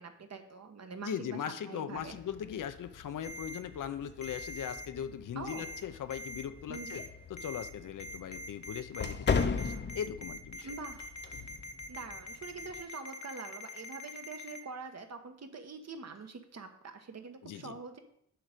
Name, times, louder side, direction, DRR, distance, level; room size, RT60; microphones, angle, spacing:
voice 1, 0.0-2.2 5.3-5.6 6.7-7.0 10.6-11.1 11.9-18.0, right 4 dB, 55° right, 6 dB, 1.2 m, -45 dB
voice 2, 1.0-7.0 7.3-10.7 17.4-17.8, left 9 dB, 85° left, 11 dB, 0.7 m, -39 dB
sound 1, 1.9-12.8, left 5 dB, 35° left, 0.7 m, -39 dB
Ringtone, 3.2-3.6 4.2-4.9 5.5-5.8 6.1-6.4 6.7-7.1 7.4-7.7 8.0-14.6, left 1 dB, 65° left, 1.1 m, -43 dB
7.8 x 5.0 x 6.6 m, 0.71 s
wide cardioid pair, 95°, 31 cm